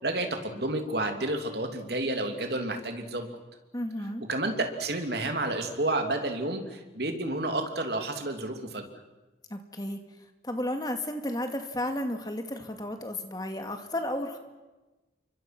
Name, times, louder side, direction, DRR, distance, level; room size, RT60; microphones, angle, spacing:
voice 1, 0.0-3.3 4.3-8.8, right 2 dB, 60° right, 5 dB, 3.0 m, -30 dB
voice 2, 3.7-4.2 9.5-10.0 10.4-14.4, left 1 dB, 20° left, 6 dB, 2.1 m, -33 dB
29.5 x 24.5 x 6.1 m, 1.1 s
head